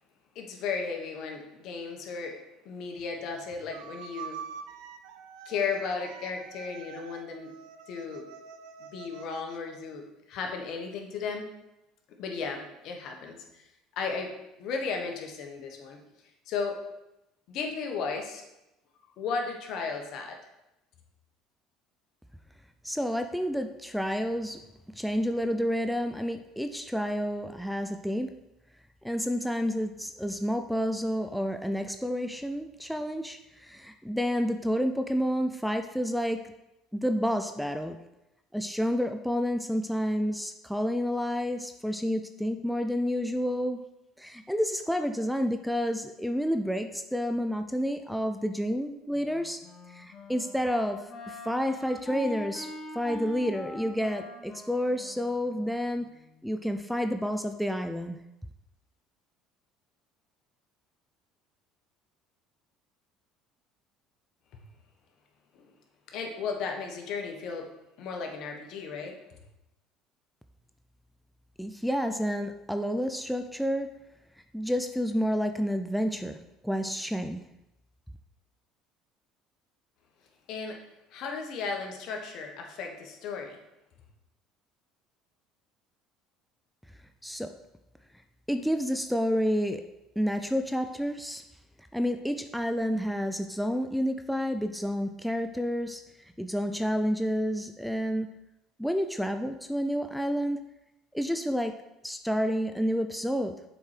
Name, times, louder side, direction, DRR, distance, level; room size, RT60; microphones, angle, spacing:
voice 1, 0.3-2.4 2.6-4.4 5.4-7.5 7.9-8.2 8.8-11.5 12.2-13.7 13.9-16.0 16.5-16.8 17.5-18.4 19.2-20.4 64.5-64.6 65.5-65.7 66.1-67.7 68.0-69.2 80.5-80.8 81.1-83.6, left 5 dB, 60° left, 2 dB, 1.4 m, -35 dB
sound 1, 3.7-9.6, right 7 dB, 75° right, 0.5 m, -45 dB
voice 2, 22.8-24.6 25.0-28.3 29.0-36.4 36.9-38.0 38.5-43.8 44.2-49.6 49.9-51.0 51.3-56.1 56.4-58.2 71.6-73.9 74.5-76.4 76.6-77.4 87.2-87.5 88.5-89.8 90.2-91.4 91.9-96.0 96.4-98.3 98.8-100.6 101.1-101.7 102.0-103.6, equal, ahead, 7 dB, 0.4 m, -29 dB
Wind instrument woodwind instrument, 49.1-56.3, left 2 dB, 40° left, 1.5 m, -43 dB
7.0 x 4.5 x 5.0 m, 0.92 s
supercardioid pair, 95°, 0 cm